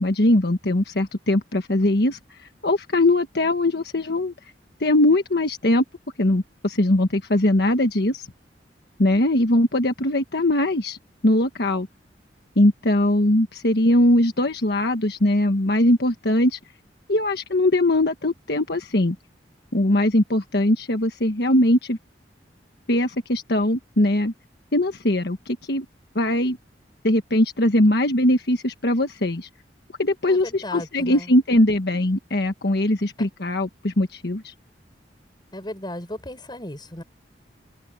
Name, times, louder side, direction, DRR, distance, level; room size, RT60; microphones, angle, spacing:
voice 1, 0.0-2.2 2.6-4.3 4.8-5.8 6.2-8.3 9.0-11.0 11.2-11.9 12.6-16.6 17.1-19.2 19.7-22.0 22.9-24.3 24.7-25.8 26.1-26.6 27.0-29.5 30.0-34.5, left 1 dB, 65° left, 1.4 m, -21 dB
voice 2, 30.2-31.3 35.5-37.0, left 1 dB, 25° left, 6.7 m, -35 dB
open air
head